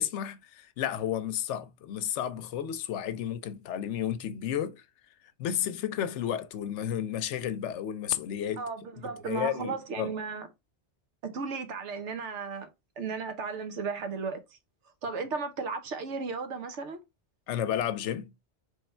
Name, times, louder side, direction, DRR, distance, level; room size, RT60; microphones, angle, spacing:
voice 1, 0.0-4.8 5.4-8.7 9.0-10.1 17.5-18.3, left 10 dB, 85° left, 0.9 m, -32 dB
voice 2, 8.6-10.5 11.2-12.7 13.0-14.4 15.0-17.0, right 5 dB, 85° right, 1.1 m, -35 dB
3.4 x 3.3 x 4.2 m
omnidirectional pair, 1.2 m